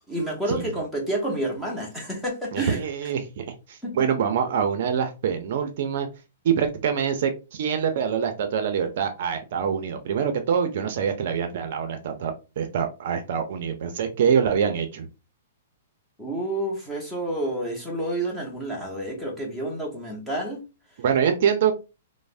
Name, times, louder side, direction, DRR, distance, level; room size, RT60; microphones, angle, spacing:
voice 1, 0.1-2.8 3.8-3.9 16.2-20.7, right 1 dB, 5° left, -2 dB, 0.7 m, -29 dB
voice 2, 2.5-6.1 6.4-15.1 21.0-21.7, right 7 dB, 50° right, 7 dB, 0.5 m, -25 dB
3.2 x 2.0 x 2.4 m, 0.29 s
hypercardioid pair, 160°, 0 cm